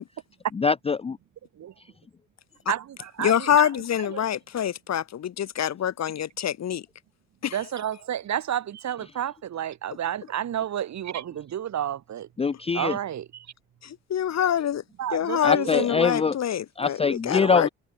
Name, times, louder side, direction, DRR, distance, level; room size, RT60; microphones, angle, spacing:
voice 1, 0.6-1.2 12.4-13.0 15.4-16.3 16.8-17.7, left 5 dB, 20° left, 0.5 m, -23 dB
voice 2, 2.7-3.7 4.1-4.2 7.5-12.3 12.7-13.5 15.0-16.1 17.4-17.6, right 10 dB, 65° right, 3.7 m, -31 dB
voice 3, 3.2-6.9 7.4-7.6 13.8-14.8 15.1-17.7, left 10 dB, 60° left, 2.6 m, -25 dB
cardioid pair, 90°, 30 cm